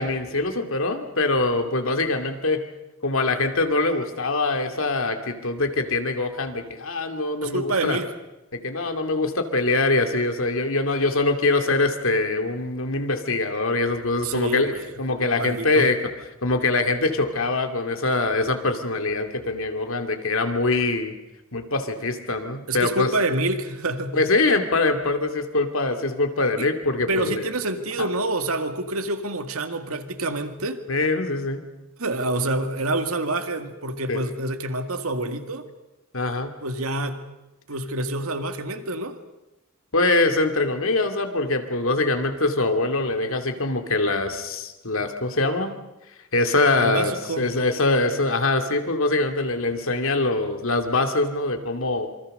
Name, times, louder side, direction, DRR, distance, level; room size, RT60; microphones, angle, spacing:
voice 1, 0.0-2.6 3.0-8.0 8.5-16.0 16.4-21.1 21.5-23.1 24.1-27.5 28.0-28.1 30.9-31.6 34.1-34.2 36.1-36.6 39.9-45.7 46.3-52.1, left 2 dB, 70° left, 6 dB, 2.5 m, -23 dB
voice 2, 7.4-8.1 14.2-14.8 15.4-15.9 22.7-24.3 27.1-30.8 32.0-35.7 36.6-37.2 37.7-39.2 46.8-47.5, right 2 dB, 85° right, 8 dB, 2.1 m, -27 dB
27.0 x 24.5 x 6.6 m, 0.98 s
head